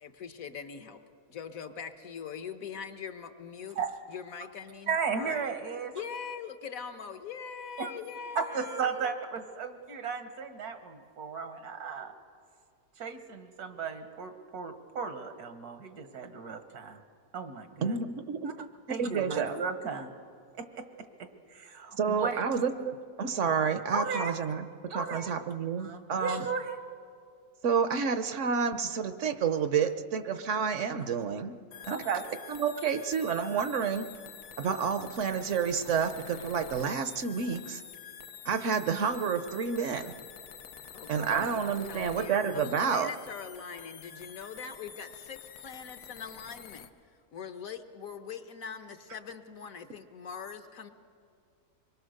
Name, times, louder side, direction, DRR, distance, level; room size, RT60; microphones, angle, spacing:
voice 1, 0.0-1.0 1.3-3.8 4.1-5.5 5.9-9.1 40.9-46.9 47.3-50.9, left 6 dB, 65° left, 8 dB, 1.4 m, -42 dB
voice 2, 4.9-5.9 7.8-7.9 8.4-12.1 13.0-17.0 17.3-18.0 18.9-20.1 20.6-20.8 21.2-22.4 23.9-24.4 24.9-25.3 25.8-26.8 31.9-32.3 41.2-41.5, right 5 dB, 80° right, 7 dB, 1.9 m, -35 dB
voice 3, 17.8-18.7 19.0-19.6 22.0-26.5 27.6-31.6 31.9-32.0 32.5-34.1 34.6-37.8 38.4-40.1 41.1-43.1, right 6 dB, 60° right, 10 dB, 1.0 m, -30 dB
sound 1, 31.7-46.9, left 8 dB, 85° left, 1.4 m, -47 dB
25.0 x 22.0 x 6.5 m, 2.3 s
omnidirectional pair, 1.6 m